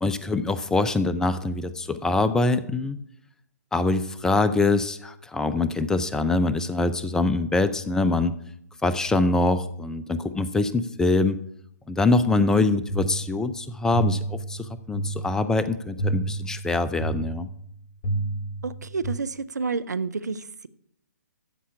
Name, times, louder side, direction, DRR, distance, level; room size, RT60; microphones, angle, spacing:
voice 1, 0.0-3.0 3.7-8.3 8.8-11.4 11.9-17.5, left 3 dB, 5° left, 13 dB, 0.5 m, -24 dB
sound 1, 12.3-19.2, right 2 dB, 35° left, 2.7 m, -31 dB
voice 2, 18.6-20.7, right 4 dB, 75° right, 14 dB, 0.8 m, -30 dB
14.5 x 5.7 x 8.4 m, 0.73 s
figure-of-eight pair, 130°, 9 cm